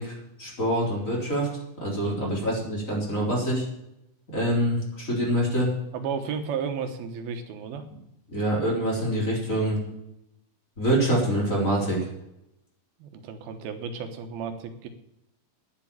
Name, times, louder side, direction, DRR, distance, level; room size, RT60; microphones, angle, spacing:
voice 1, 0.0-1.5 1.8-3.6 4.3-5.7 8.3-9.8 10.8-12.0, right 1 dB, 20° left, -3 dB, 4.2 m, -25 dB
voice 2, 2.0-2.3 5.9-7.8 13.0-14.9, right 6 dB, 85° right, 7 dB, 3.1 m, -33 dB
11.0 x 9.1 x 8.9 m, 0.85 s
omnidirectional pair, 4.2 m